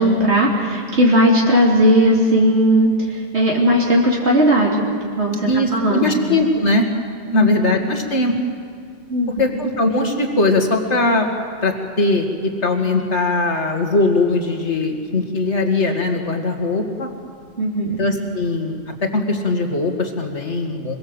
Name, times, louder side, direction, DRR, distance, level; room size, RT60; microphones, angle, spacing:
voice 1, 0.0-4.9 5.2-6.2 7.3-7.5 9.1-9.3 17.6-18.0, equal, 75° right, -3 dB, 3.5 m, -17 dB
voice 2, 5.5-6.9 7.3-8.3 9.4-11.3 11.6-17.1 17.9-21.0, left 2 dB, 90° left, 3 dB, 2.4 m, -20 dB
25.0 x 22.5 x 8.0 m, 2.1 s
omnidirectional pair, 1.1 m